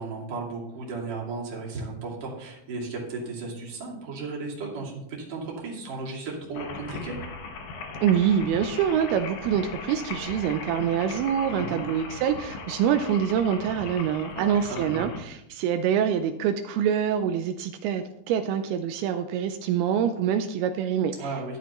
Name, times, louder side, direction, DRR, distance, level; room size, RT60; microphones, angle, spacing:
voice 1, 0.0-7.1 11.5-11.9 14.3-15.1 21.2-21.6, right 3 dB, 40° right, -3 dB, 2.9 m, -35 dB
sound 1, 6.5-15.2, left 4 dB, 65° left, 2.6 m, -38 dB
voice 2, 8.0-21.3, right 8 dB, 85° right, 7 dB, 2.5 m, -25 dB
12.5 x 11.0 x 3.0 m, 0.84 s
omnidirectional pair, 4.5 m